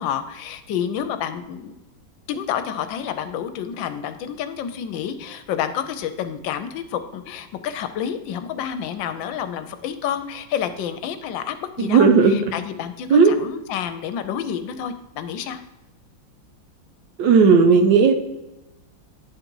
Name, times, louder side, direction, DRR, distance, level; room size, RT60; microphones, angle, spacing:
voice 1, 0.0-1.7 2.3-13.1 13.4-15.6, left 9 dB, 75° left, 10 dB, 1.3 m, -29 dB
voice 2, 11.8-12.4 13.1-13.3 17.2-18.1, right 5 dB, 75° right, 7 dB, 1.3 m, -14 dB
9.8 x 3.9 x 4.5 m, 0.96 s
omnidirectional pair, 2.1 m